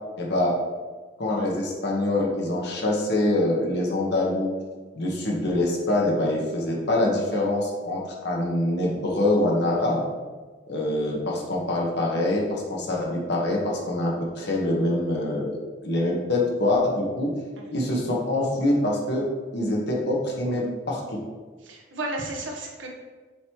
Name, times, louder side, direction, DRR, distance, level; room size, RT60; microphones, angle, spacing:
voice 1, 0.2-0.6 1.2-4.5 4.9-10.0 10.7-17.3 17.7-19.3 19.5-21.2, left 1 dB, 65° left, -2 dB, 1.3 m, -25 dB
voice 2, 17.6-17.9 21.6-22.9, right 2 dB, 85° right, 0 dB, 1.2 m, -34 dB
7.0 x 3.1 x 4.6 m, 1.4 s
head